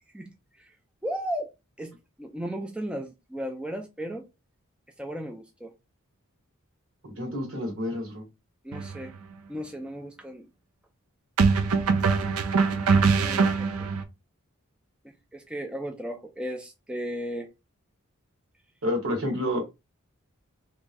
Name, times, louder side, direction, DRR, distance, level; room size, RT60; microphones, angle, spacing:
voice 1, 1.0-1.5 1.8-4.3 5.0-5.7 8.6-9.1 9.5-10.4 13.2-13.5 13.8-13.9 15.0-17.5, equal, 5° right, 0.3 m, -35 dB
voice 2, 7.2-8.2 18.8-19.6, left 1 dB, 65° right, 1.6 m, -29 dB
sound 1, 8.7-9.0 11.4-14.0, right 5 dB, 90° right, 0.5 m, -22 dB
3.5 x 3.0 x 2.5 m
head